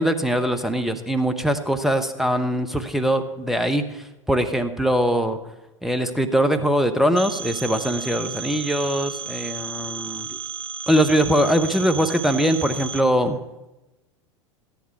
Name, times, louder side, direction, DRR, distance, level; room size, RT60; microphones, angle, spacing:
voice 1, 0.0-5.4 5.8-10.4 10.9-13.4, equal, ahead, 8 dB, 1.0 m, -22 dB
Telephone, 7.2-13.0, right 6 dB, 50° right, 2.4 m, -33 dB
14.0 x 10.5 x 4.7 m, 1.0 s
figure-of-eight pair, 85°, 17 cm